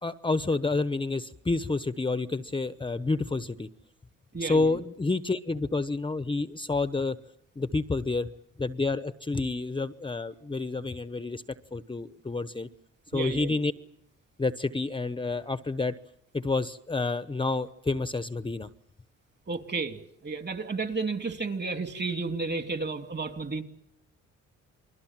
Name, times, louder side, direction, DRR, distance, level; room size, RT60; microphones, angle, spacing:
voice 1, 0.0-3.7 4.4-7.2 7.6-8.3 8.6-11.4 11.7-12.7 13.1-13.7 14.4-15.9 16.3-18.7, left 3 dB, 15° left, 13 dB, 0.9 m, -29 dB
voice 2, 4.3-4.8 13.1-13.6 19.5-23.6, right 4 dB, 35° right, 8 dB, 2.8 m, -32 dB
29.0 x 22.0 x 7.4 m, 0.74 s
cardioid pair, 90°, 30 cm